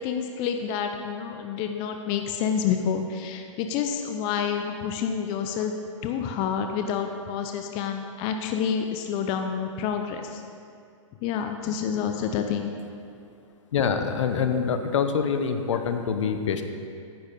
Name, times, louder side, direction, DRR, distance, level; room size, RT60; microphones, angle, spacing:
voice 1, 0.0-5.7 6.0-10.4 11.2-12.8, left 7 dB, 30° left, 5 dB, 0.7 m, -28 dB
voice 2, 13.7-16.6, left 6 dB, 65° left, 8 dB, 1.0 m, -25 dB
10.0 x 8.8 x 5.4 m, 2.4 s
hypercardioid pair, 135°, 17 cm